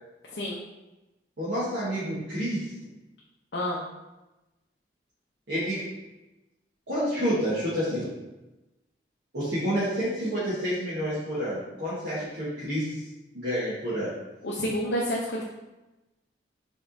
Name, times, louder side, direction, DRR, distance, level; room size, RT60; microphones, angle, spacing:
voice 1, 1.4-2.7 5.5-5.9 6.9-8.1 9.3-13.0 13.3-14.1, equal, 90° right, -12 dB, 1.5 m, -29 dB
voice 2, 14.4-15.4, equal, 65° left, -5 dB, 0.7 m, -29 dB
5.2 x 3.5 x 2.7 m, 1.0 s
head